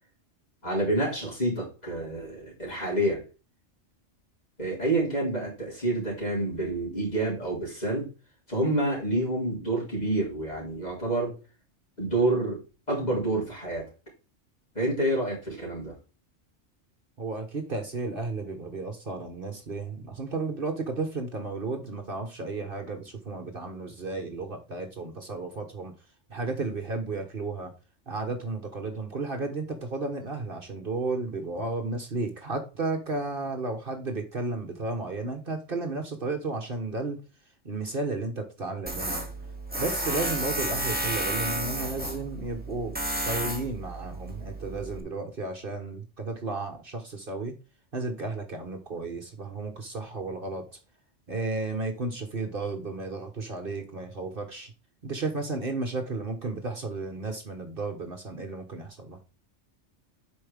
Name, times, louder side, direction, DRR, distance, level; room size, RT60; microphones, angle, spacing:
voice 1, 0.6-3.2 4.6-8.1 8.5-11.4 12.0-12.6 12.9-13.9 14.7-15.9, right 1 dB, 35° left, 4.3 m, -28 dB
voice 2, 17.2-25.9 26.3-27.7 28.1-37.2 37.6-39.3 39.7-47.5 47.9-50.6 51.3-54.7 55.0-59.2, right 3 dB, 50° right, 1.5 m, -33 dB
Tools, 38.9-45.0, right 1 dB, 10° right, 1.6 m, -32 dB
8.7 x 5.4 x 3.5 m
omnidirectional pair, 1.2 m